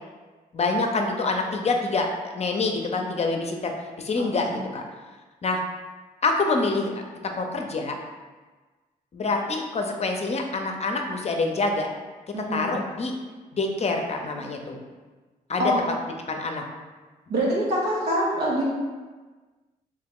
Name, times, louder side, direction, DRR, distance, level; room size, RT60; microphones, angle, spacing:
voice 1, 0.5-2.1 2.3-4.8 5.4-5.6 6.2-8.0 9.1-11.9 12.3-13.1 13.5-14.8 15.5-15.7 16.3-16.6, left 3 dB, 40° left, 3 dB, 0.6 m, -26 dB
voice 2, 4.2-4.6 12.3-12.7 15.6-15.8 17.3-18.6, equal, 85° right, -5 dB, 0.9 m, -25 dB
3.1 x 2.8 x 3.7 m, 1.3 s
cardioid pair, 65°, 16 cm